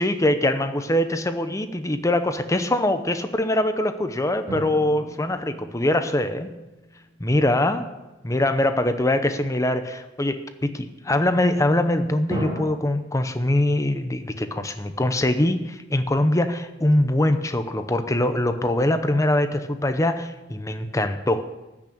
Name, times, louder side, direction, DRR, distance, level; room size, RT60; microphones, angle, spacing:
voice 1, 0.0-6.5 7.2-7.8 8.2-21.4, left 1 dB, 15° left, 9 dB, 0.7 m, -23 dB
sound 1, 4.5-7.4 12.3-12.6, right 1 dB, 20° right, 3.1 m, -35 dB
14.5 x 6.3 x 8.7 m, 1.1 s
head